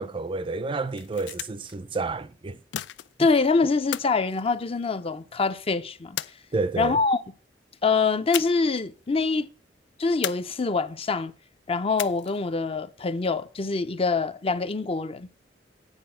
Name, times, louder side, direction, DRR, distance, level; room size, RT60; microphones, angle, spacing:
voice 1, 0.0-2.6 6.5-7.0, right 3 dB, 30° right, 0.4 m, -30 dB
sound 1, 0.9-1.8 2.7-3.4 3.9-5.2 6.2-6.9 8.3-8.8 9.1-9.2 10.2-11.0 12.0-12.5, left 12 dB, 80° left, 0.4 m, -35 dB
voice 2, 3.2-6.2 6.8-7.2 7.8-9.5 10.0-11.3 11.7-15.3, left 4 dB, 35° left, 0.5 m, -25 dB
9.0 x 4.8 x 7.5 m
head